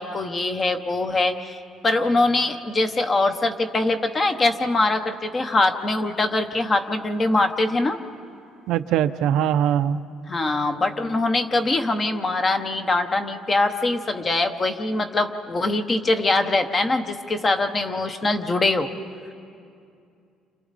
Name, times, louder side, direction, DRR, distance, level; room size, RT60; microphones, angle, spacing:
voice 1, 0.0-8.0 10.3-18.9, left 2 dB, 25° left, 8 dB, 0.9 m, -23 dB
voice 2, 8.7-10.0, right 10 dB, 70° right, 10 dB, 0.6 m, -21 dB
30.0 x 27.0 x 4.1 m, 2.5 s
cardioid pair, 165°, 0 cm